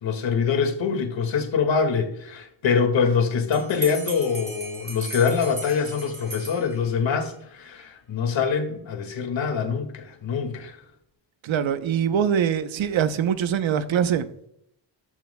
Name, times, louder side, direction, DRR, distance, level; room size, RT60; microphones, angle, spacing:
voice 1, 0.0-10.8, left 6 dB, 75° left, 2.2 m, -24 dB
Bell, 3.5-7.2, right 2 dB, 25° right, 3.3 m, -37 dB
voice 2, 11.4-14.3, right 8 dB, 90° right, 1.0 m, -23 dB
13.5 x 12.0 x 2.3 m
wide cardioid pair, 165°, 45 cm